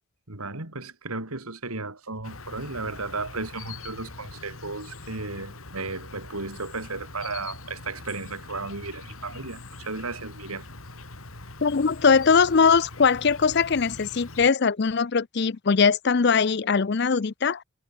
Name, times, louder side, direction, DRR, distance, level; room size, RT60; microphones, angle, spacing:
voice 1, 0.3-10.7, right 3 dB, 85° right, 3.8 m, -34 dB
Insect, 2.2-14.5, left 3 dB, 75° left, 3.8 m, -43 dB
voice 2, 11.6-17.6, left 5 dB, 50° left, 0.5 m, -21 dB
head